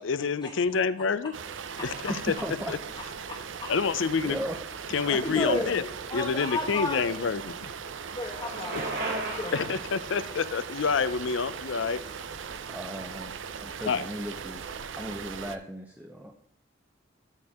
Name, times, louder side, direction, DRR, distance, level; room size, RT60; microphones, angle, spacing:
voice 1, 0.0-1.3 1.8-2.3 2.7-2.8 3.7-4.4 4.9-5.8 6.1-7.7 8.7-8.8 9.5-12.0 13.9-14.0, left 5 dB, 75° left, 15 dB, 0.5 m, -28 dB
sound 1, 1.3-15.6, right 6 dB, 75° right, 0.6 m, -39 dB
voice 2, 2.1-3.1 4.2-4.5 5.1-5.4 12.3-12.4 12.7-13.3 13.6-16.3, equal, 10° right, 2 dB, 0.7 m, -37 dB
voice 3, 3.3-3.7 5.2-7.1 8.2-9.6, left 2 dB, 25° left, -3 dB, 1.2 m, -33 dB
Bicycle, 7.2-12.4, right 2 dB, 60° right, 2.2 m, -38 dB
12.5 x 4.4 x 3.5 m, 0.69 s
head